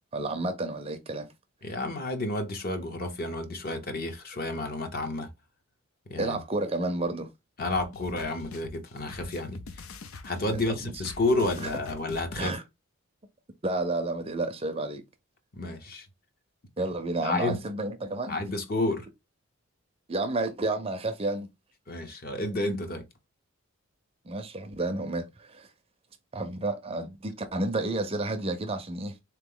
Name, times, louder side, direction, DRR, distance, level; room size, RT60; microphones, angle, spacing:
voice 1, 0.1-1.3 6.2-7.3 10.5-10.9 11.6-11.7 12.4-12.6 13.6-15.0 16.8-18.4 20.1-21.5 24.2-25.7 26.3-29.2, right 2 dB, 25° right, 0.5 m, -31 dB
voice 2, 1.6-5.3 6.1-6.4 7.6-9.7 10.2-12.6 15.5-16.1 17.2-17.6 18.3-19.1 21.9-23.1, left 2 dB, 45° left, 0.8 m, -30 dB
sound 1, 7.6-12.5, left 3 dB, 75° left, 0.5 m, -44 dB
3.8 x 3.0 x 3.7 m
head